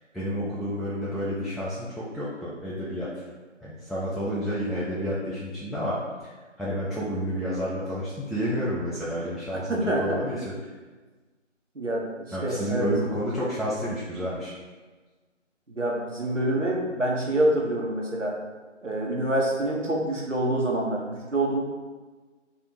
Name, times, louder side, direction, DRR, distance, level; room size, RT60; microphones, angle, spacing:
voice 1, 0.1-3.2 3.6-9.7 10.0-10.5 12.3-14.5, equal, ahead, -10 dB, 0.4 m, -30 dB
voice 2, 9.7-10.2 11.7-12.9 15.7-18.4 18.8-21.6, right 1 dB, 70° right, -2 dB, 1.2 m, -26 dB
3.3 x 2.9 x 4.5 m, 1.3 s
figure-of-eight pair, 170°, 38 cm